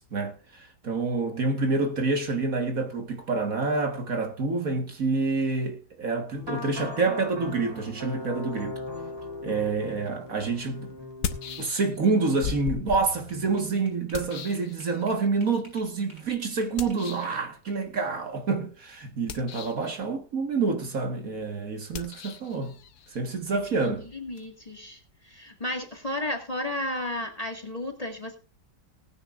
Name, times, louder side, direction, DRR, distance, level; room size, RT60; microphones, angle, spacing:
voice 1, 0.0-8.8 9.4-11.0 11.6-22.8 23.1-24.1, right 4 dB, 55° right, 2.0 m, -28 dB
sound 1, 6.3-11.6, left 2 dB, 15° right, 3.2 m, -39 dB
sound 2, 10.1-10.2 11.0-12.1 12.4-15.3 16.8-17.4 19.1-19.9 21.9-24.5, left 7 dB, 70° left, 1.5 m, -38 dB
sound 3, 12.7-16.3 16.6-18.1, equal, 35° right, 5.7 m, -54 dB
voice 2, 23.5-28.4, left 1 dB, 20° left, 2.0 m, -34 dB
19.0 x 9.8 x 2.5 m
omnidirectional pair, 1.8 m